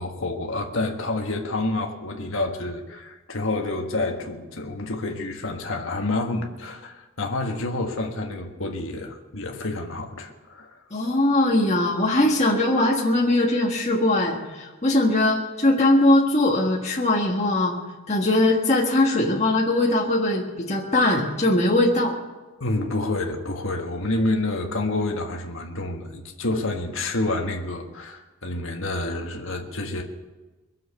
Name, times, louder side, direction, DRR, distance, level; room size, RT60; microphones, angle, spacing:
voice 1, 0.0-10.8 22.6-30.0, left 2 dB, 60° left, 2 dB, 1.6 m, -28 dB
voice 2, 10.9-17.7 18.1-22.1, left 1 dB, 30° left, -3 dB, 1.6 m, -21 dB
22.5 x 7.7 x 6.8 m, 1.2 s
head